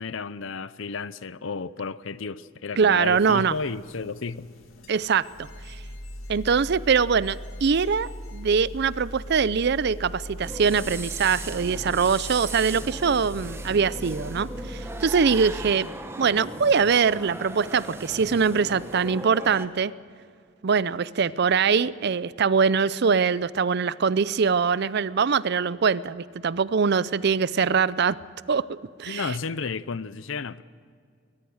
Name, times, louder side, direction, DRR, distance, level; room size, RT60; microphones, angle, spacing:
voice 1, 0.0-4.5 29.1-30.6, left 4 dB, 70° left, 0.6 m, -32 dB
voice 2, 2.8-3.5 4.9-5.3 5.7-5.8 6.3-15.9 16.2-19.9 20.6-28.2 28.5-29.3, right 5 dB, 55° right, 0.5 m, -23 dB
sound 1, 3.1-15.7, equal, 90° left, 2.2 m, -39 dB
sound 2, 10.4-19.7, right 2 dB, 15° right, 1.0 m, -38 dB
22.0 x 19.5 x 6.4 m
head